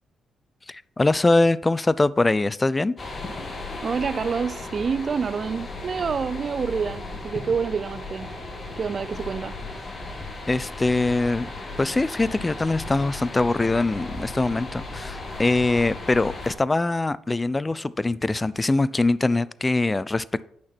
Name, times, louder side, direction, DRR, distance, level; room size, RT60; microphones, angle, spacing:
voice 1, 0.7-2.9 10.5-11.5 11.8-20.5, left 2 dB, 25° left, 0.4 m, -23 dB
sound 1, 3.0-16.5, left 2 dB, 40° left, 1.9 m, -36 dB
voice 2, 3.8-8.3 8.8-9.6, right 6 dB, 50° right, 0.4 m, -27 dB
9.4 x 5.8 x 4.4 m
supercardioid pair, 60°, 0 cm